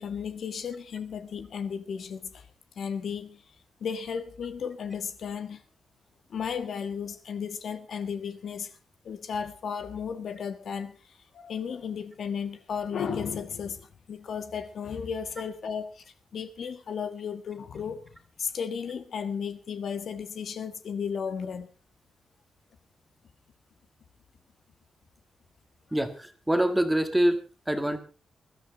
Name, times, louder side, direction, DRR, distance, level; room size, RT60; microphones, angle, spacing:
voice 1, 0.0-2.5 2.7-3.4 3.8-5.6 6.3-8.7 9.0-16.0 16.3-18.0 18.4-21.7, left 6 dB, 55° left, 1.5 m, -34 dB
voice 2, 25.9-27.4 27.7-28.0, right 1 dB, 5° right, 1.9 m, -25 dB
20.5 x 13.0 x 3.9 m
wide cardioid pair, 140°, 0 cm